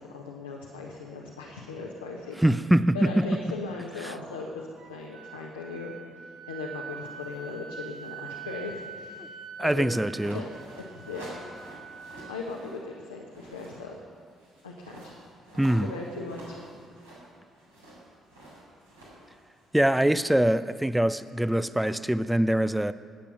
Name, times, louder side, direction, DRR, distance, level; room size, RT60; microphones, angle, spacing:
voice 1, 0.0-2.4 2.9-5.9 6.2-9.3 9.6-9.9 10.3-10.5 10.8-11.4 12.3-14.0 14.6-15.1 15.5-16.6, left 3 dB, 80° left, -2 dB, 1.2 m, -38 dB
voice 2, 2.4-3.1 4.0-4.1 9.6-10.4 15.6-15.9 19.7-22.9, right 1 dB, 5° right, 14 dB, 0.6 m, -23 dB
Wind instrument woodwind instrument, 4.8-12.5, right 6 dB, 65° right, 2.1 m, -44 dB
sound 1, 10.1-12.8 13.1-20.2, right 1 dB, 85° right, 4.3 m, -47 dB
20.0 x 8.5 x 6.0 m, 2.2 s
figure-of-eight pair, 45°, 0 cm